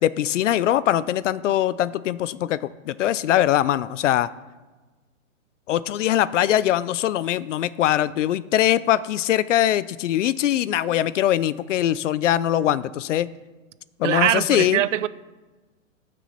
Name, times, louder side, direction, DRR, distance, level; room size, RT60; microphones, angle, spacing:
voice 1, 0.0-4.3 5.7-13.3 14.0-14.8, left 12 dB, 65° left, 0.5 m, -22 dB
voice 2, 14.0-15.1, right 12 dB, 65° right, 0.5 m, -22 dB
14.0 x 6.3 x 4.2 m
hypercardioid pair, 160°, 41 cm